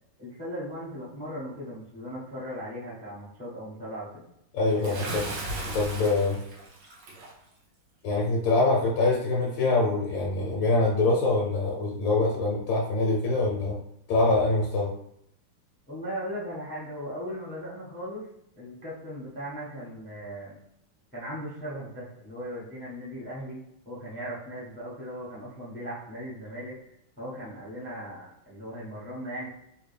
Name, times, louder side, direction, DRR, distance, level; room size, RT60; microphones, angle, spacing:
voice 1, 0.2-4.2 4.7-5.1 15.9-18.3 18.6-20.6 21.1-23.6 23.8-26.7 27.2-29.5, equal, 10° left, -8 dB, 0.8 m, -38 dB
voice 2, 4.5-5.2 5.7-6.4 8.0-13.8 14.1-14.9, left 2 dB, 70° left, -3 dB, 1.3 m, -24 dB
Bathtub (filling or washing) / Splash splatter, 4.8-7.3, right 2 dB, 65° right, 1.3 m, -36 dB
3.3 x 2.5 x 3.3 m, 0.76 s
omnidirectional pair, 2.3 m